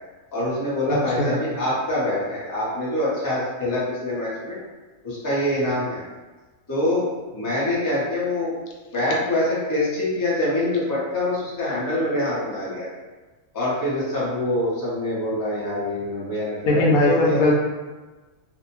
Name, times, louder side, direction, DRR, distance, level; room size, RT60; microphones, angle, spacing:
voice 1, 0.3-4.6 5.0-6.0 6.7-7.1 7.3-8.5 8.9-12.9 13.5-17.4, left 1 dB, 25° left, -8 dB, 0.5 m, -25 dB
voice 2, 0.9-1.4 16.6-17.5, left 2 dB, 90° left, -2 dB, 1.0 m, -20 dB
2.6 x 2.1 x 2.9 m, 1.2 s
omnidirectional pair, 1.4 m